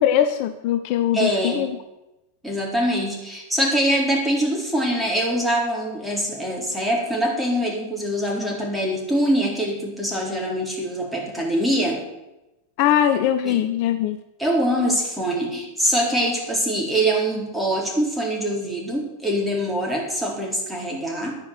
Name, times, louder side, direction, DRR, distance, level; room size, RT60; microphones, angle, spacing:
voice 1, 0.0-1.7 12.8-14.2, left 10 dB, 45° left, 9 dB, 0.7 m, -21 dB
voice 2, 1.1-1.7 2.4-12.0 13.4-13.6 14.4-21.4, right 1 dB, 5° right, -1 dB, 4.0 m, -23 dB
11.5 x 9.7 x 6.8 m, 0.95 s
figure-of-eight pair, 90°, 0 cm